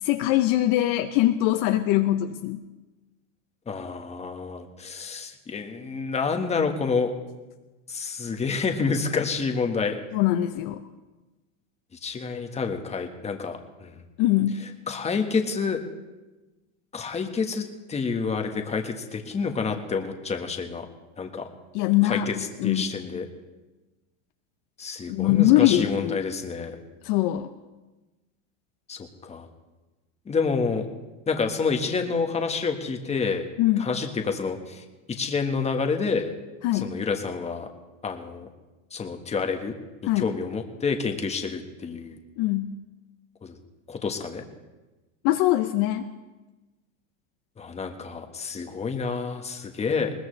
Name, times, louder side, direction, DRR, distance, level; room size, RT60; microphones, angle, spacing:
voice 1, 0.0-2.6 10.1-10.8 14.2-14.6 21.7-22.8 25.1-26.2 27.0-27.5 33.6-33.9 36.6-36.9 40.0-40.3 42.4-42.7 45.2-46.1, left 14 dB, 50° left, 7 dB, 0.8 m, -22 dB
voice 2, 3.7-7.1 7.9-10.0 12.0-14.0 14.9-15.8 16.9-20.8 21.2-21.5 22.0-22.3 22.6-23.2 24.8-26.8 28.9-29.5 30.3-30.9 31.3-33.5 33.8-36.3 36.7-37.7 38.0-38.5 38.9-39.7 40.1-42.2 43.4-43.6 43.9-44.4 47.6-50.1, left 5 dB, 15° left, 4 dB, 1.5 m, -28 dB
21.0 x 19.5 x 3.3 m, 1.2 s
supercardioid pair, 135°, 38 cm